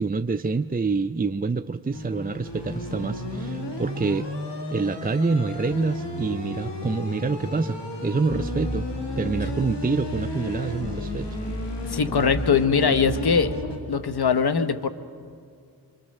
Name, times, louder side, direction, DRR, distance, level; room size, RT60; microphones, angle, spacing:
voice 1, 0.0-4.3 4.7-8.9 9.2-11.3, right 4 dB, 20° right, 9 dB, 0.5 m, -26 dB
sound 1, 1.9-13.8, left 1 dB, 90° left, 2.5 m, -32 dB
voice 2, 11.8-13.5 13.9-14.9, left 6 dB, 65° left, 11 dB, 1.1 m, -21 dB
25.0 x 24.5 x 6.6 m, 2.3 s
cardioid pair, 45°, 41 cm